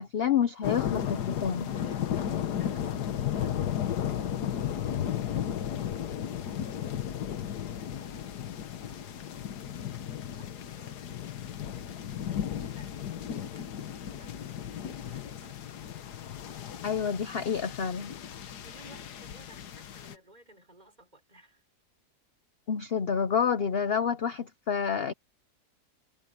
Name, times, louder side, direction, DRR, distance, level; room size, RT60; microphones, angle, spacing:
voice 1, 0.0-1.7 16.8-18.1 22.7-25.1, left 7 dB, 50° left, 0.8 m, -28 dB
sound 1, 0.6-20.1, left 10 dB, 80° left, 1.6 m, -34 dB
voice 2, 1.6-9.3 9.6-16.1 18.6-21.6, right 1 dB, 25° right, 5.4 m, -59 dB
omnidirectional pair, 1.7 m